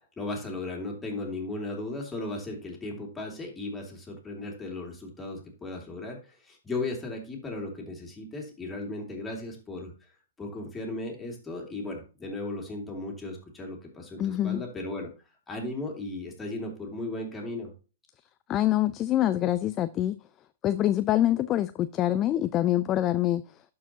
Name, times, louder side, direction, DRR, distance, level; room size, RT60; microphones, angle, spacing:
voice 1, 0.2-9.9 10.4-15.1 15.5-17.7, left 2 dB, 10° left, 2.5 m, -36 dB
voice 2, 14.2-14.6 18.5-20.2 20.6-23.4, left 13 dB, 25° left, 0.3 m, -25 dB
12.0 x 4.7 x 2.8 m
hypercardioid pair, 135°, 0 cm